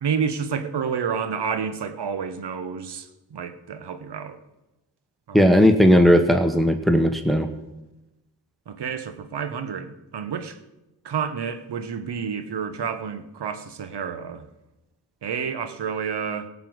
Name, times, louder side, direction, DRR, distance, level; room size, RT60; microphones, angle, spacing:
voice 1, 0.0-4.4 5.3-5.6 8.7-10.6 11.0-14.5 15.2-16.5, right 6 dB, 65° right, 1.3 m, -29 dB
voice 2, 5.3-7.5, equal, ahead, 1.3 m, -16 dB
17.5 x 5.9 x 7.9 m
supercardioid pair, 40°, 43 cm